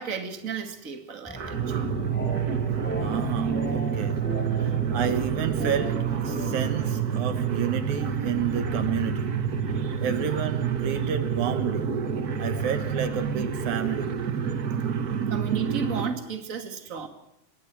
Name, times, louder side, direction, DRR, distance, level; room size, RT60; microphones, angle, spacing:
voice 1, 0.0-2.0 8.0-8.1 9.8-10.0 15.3-17.1, right 6 dB, 30° right, 6 dB, 2.5 m, -34 dB
sound 1, 1.3-8.7, right 1 dB, 5° left, 5.0 m, -37 dB
sound 2, 1.4-16.1, right 7 dB, 45° right, 1.2 m, -28 dB
voice 2, 3.0-4.2 4.6-9.4 10.0-11.9 12.4-14.1 14.6-14.9, right 8 dB, 75° right, 9 dB, 2.8 m, -31 dB
27.0 x 22.0 x 4.8 m, 0.82 s
omnidirectional pair, 3.5 m